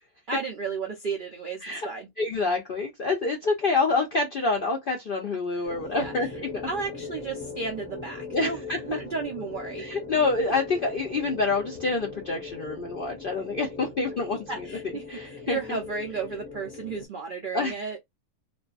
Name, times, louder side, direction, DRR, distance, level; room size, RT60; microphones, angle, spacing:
voice 1, 0.3-2.1 5.9-6.3 6.7-8.6 8.8-9.9 14.5-18.0, right 4 dB, 70° right, 0.4 m, -33 dB
voice 2, 2.2-6.7 8.3-9.0 9.8-14.7 15.1-15.8 17.5-17.7, left 3 dB, 65° left, 0.5 m, -27 dB
sound 1, 5.6-17.1, left 4 dB, 10° left, 0.7 m, -40 dB
2.5 x 2.5 x 2.3 m
omnidirectional pair, 1.6 m